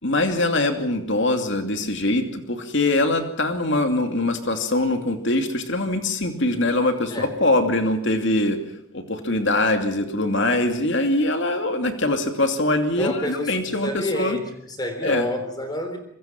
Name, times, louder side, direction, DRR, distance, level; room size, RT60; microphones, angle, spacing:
voice 1, 0.0-8.6 8.9-14.4 15.0-15.3, left 2 dB, 55° left, 6 dB, 2.6 m, -23 dB
voice 2, 13.0-16.0, left 1 dB, 20° left, 7 dB, 3.6 m, -29 dB
26.0 x 22.0 x 6.0 m, 0.72 s
head